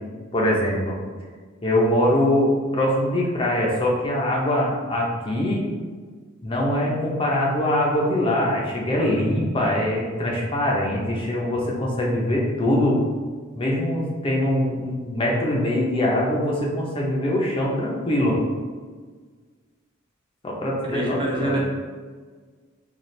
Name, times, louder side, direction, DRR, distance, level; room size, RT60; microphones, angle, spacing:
voice 1, 0.3-1.0 1.6-5.6 6.4-13.0 13.5-18.4 20.4-21.6, left 1 dB, 25° left, -3 dB, 0.6 m, -23 dB
voice 2, 20.8-21.6, right 1 dB, 25° right, -2 dB, 0.5 m, -25 dB
4.1 x 2.4 x 3.1 m, 1.5 s
head